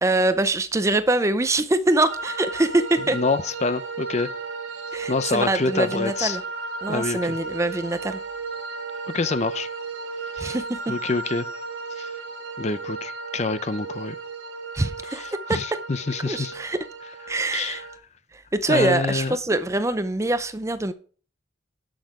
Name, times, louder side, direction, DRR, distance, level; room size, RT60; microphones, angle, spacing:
voice 1, 0.0-3.2 4.9-6.4 6.8-8.2 10.4-10.9 14.7-15.6 16.2-16.9 17.3-17.8 18.3-20.9, right 2 dB, 15° right, 0.5 m, -24 dB
sound 1, 2.1-18.0, right 4 dB, 80° right, 2.0 m, -34 dB
voice 2, 3.1-4.3 5.1-6.4 6.9-7.4 9.1-9.7 10.3-10.6 10.9-11.5 12.0-12.1 12.6-14.1 15.1-16.5 17.5-17.8 18.7-19.4, left 3 dB, 35° left, 0.5 m, -26 dB
10.0 x 6.4 x 4.8 m
head